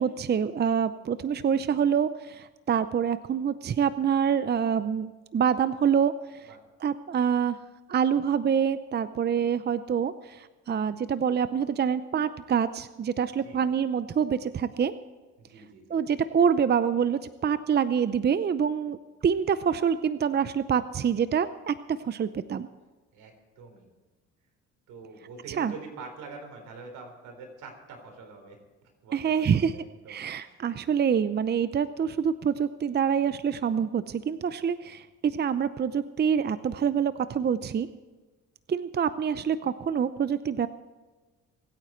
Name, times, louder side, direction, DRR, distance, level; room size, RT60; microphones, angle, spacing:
voice 1, 0.0-6.5 6.8-7.6 7.9-14.9 15.9-19.0 19.2-22.7 25.6-25.7 29.1-29.8 30.1-37.9 38.7-40.7, right 7 dB, 35° right, 13 dB, 0.6 m, -26 dB
voice 2, 13.4-13.7 15.4-16.0 23.1-23.9 24.9-28.6 29.0-30.2 30.4-30.6, right 4 dB, 85° right, 4 dB, 4.1 m, -45 dB
23.5 x 9.2 x 4.5 m, 1.3 s
cardioid pair, 90°, 30 cm